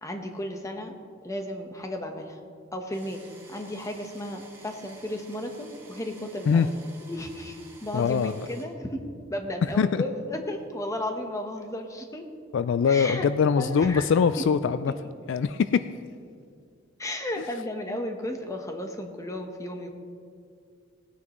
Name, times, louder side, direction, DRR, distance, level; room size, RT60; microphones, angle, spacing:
voice 1, 0.0-0.9 1.2-2.4 2.7-6.7 7.1-12.2 12.9-13.3 13.6-14.1 14.9-15.0 17.0-19.9, left 1 dB, 15° left, 4 dB, 1.0 m, -34 dB
sound 1, 2.9-8.6, right 3 dB, 10° right, 2.0 m, -52 dB
voice 2, 7.9-8.5 9.8-10.0 12.5-14.9 15.3-15.8, left 6 dB, 65° left, 13 dB, 0.3 m, -22 dB
18.5 x 9.5 x 3.0 m, 2.3 s
head